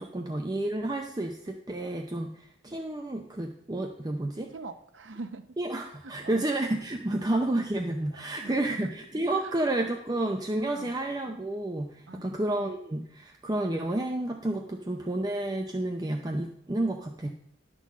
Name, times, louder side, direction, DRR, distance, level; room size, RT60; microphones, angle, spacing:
voice 1, 0.0-4.5 5.6-17.3, right 1 dB, 20° right, 3 dB, 0.5 m, -30 dB
voice 2, 4.5-5.4 6.0-6.4 8.4-8.9 9.4-9.6 10.7-10.9 12.1-12.4, right 3 dB, 70° right, 9 dB, 0.7 m, -43 dB
11.5 x 3.8 x 7.3 m, 0.72 s
head